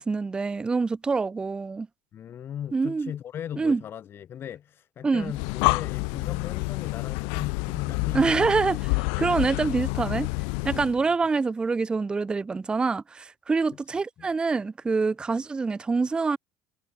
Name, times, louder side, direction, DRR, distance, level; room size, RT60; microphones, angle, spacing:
voice 1, 0.0-1.9 2.7-3.1 3.6-3.8 5.0-5.3 8.1-10.3 10.6-16.4, right 4 dB, 10° right, 0.7 m, -25 dB
voice 2, 2.1-8.6 10.9-11.1 14.2-14.3, left 9 dB, 30° left, 1.2 m, -38 dB
Breathing, 5.2-11.0, left 40 dB or more, 75° left, 1.6 m, -28 dB
cardioid pair, 175°, 8 cm